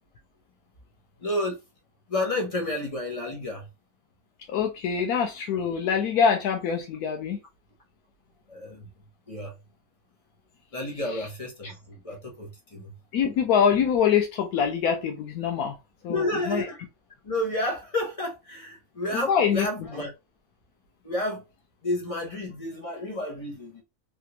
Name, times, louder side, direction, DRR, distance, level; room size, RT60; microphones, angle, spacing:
voice 1, 1.2-1.6 2.1-3.7 8.5-8.9 9.3-9.6 10.7-12.9 16.1-16.8 17.2-20.1 21.0-21.4 21.8-23.8, left 1 dB, 30° left, 0.7 m, -31 dB
voice 2, 4.5-7.4 13.1-15.7 16.0-16.6 19.1-19.7, left 7 dB, 85° left, 1.1 m, -24 dB
3.4 x 2.4 x 2.8 m
omnidirectional pair, 1.6 m